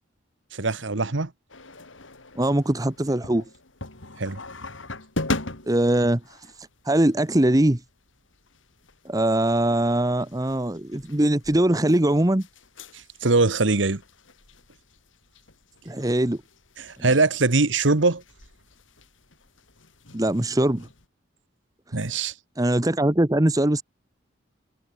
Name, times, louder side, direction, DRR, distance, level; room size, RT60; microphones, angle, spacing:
voice 1, 0.5-1.3 4.2-4.4 13.2-14.0 16.8-18.2 21.9-22.3, right 3 dB, 75° right, 1.4 m, -22 dB
sound 1, 1.5-21.1, left 2 dB, 90° left, 4.3 m, -40 dB
voice 2, 2.3-3.4 5.7-7.8 9.0-12.5 15.8-16.4 17.0-17.2 20.1-20.9 21.9-22.0 22.6-23.8, right 1 dB, 20° right, 1.0 m, -22 dB
head